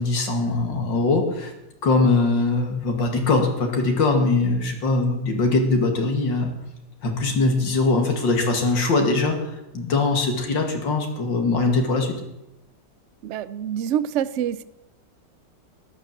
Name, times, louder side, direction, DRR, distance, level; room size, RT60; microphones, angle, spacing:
voice 1, 0.0-1.5 1.8-6.5 7.0-12.2, left 3 dB, 80° left, 3 dB, 2.9 m, -21 dB
voice 2, 13.2-14.6, right 10 dB, 70° right, 15 dB, 0.6 m, -26 dB
13.0 x 11.0 x 7.3 m, 0.91 s
omnidirectional pair, 2.0 m